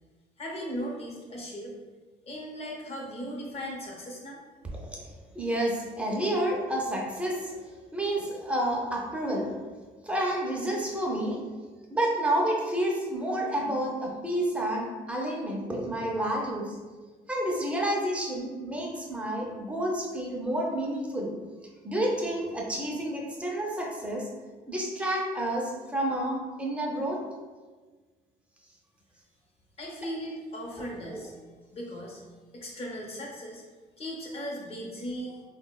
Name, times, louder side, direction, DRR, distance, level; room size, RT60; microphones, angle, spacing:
voice 1, 0.4-1.7 2.2-4.4 29.8-31.3 31.7-32.2 32.5-33.6 34.0-35.4, equal, 35° left, -2 dB, 0.7 m, -37 dB
voice 2, 5.3-7.5 7.9-9.5 10.0-11.4 11.9-16.8 17.3-21.3 21.8-24.2 24.7-27.2 31.1-31.2 35.3-35.4, right 1 dB, 5° right, -2 dB, 0.5 m, -29 dB
3.3 x 2.0 x 2.2 m, 1.4 s
cardioid pair, 110°, 17 cm